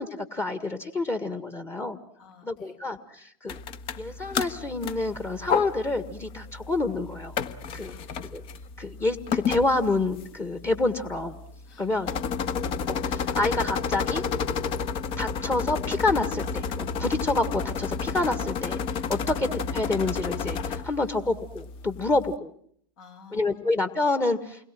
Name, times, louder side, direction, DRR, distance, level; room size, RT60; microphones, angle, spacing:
voice 1, 0.0-2.0 2.4-3.6 4.0-7.3 7.7-8.0 8.3-8.4 8.8-11.3 11.8-12.1 12.9-14.2 14.6-14.7 15.2-18.8 19.1-22.5 23.3-24.7, left 2 dB, 20° left, 10 dB, 1.8 m, -28 dB
voice 2, 2.1-2.8 7.8-8.1 11.7-12.8 19.3-19.4 23.0-23.7, left 5 dB, 65° left, 4 dB, 7.8 m, -53 dB
sound 1, 3.5-22.4, left 6 dB, 45° left, 1.6 m, -32 dB
29.5 x 22.0 x 7.7 m, 0.64 s
hypercardioid pair, 100°, 13 cm